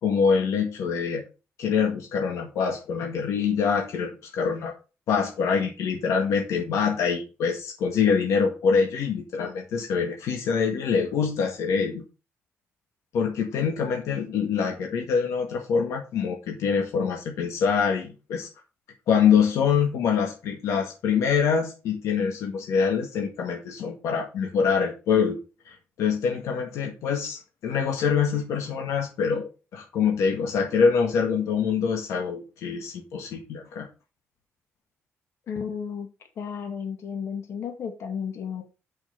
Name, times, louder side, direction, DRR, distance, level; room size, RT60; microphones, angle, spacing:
voice 1, 0.0-1.2 1.6-4.7 5.1-12.0 13.1-18.5 19.1-25.4 25.7-33.9, left 6 dB, 85° left, 1 dB, 1.8 m, -25 dB
voice 2, 35.5-36.1 36.4-38.6, left 7 dB, 60° left, 4 dB, 2.4 m, -33 dB
6.7 x 6.1 x 5.2 m, 0.32 s
cardioid pair, 125°, 5 cm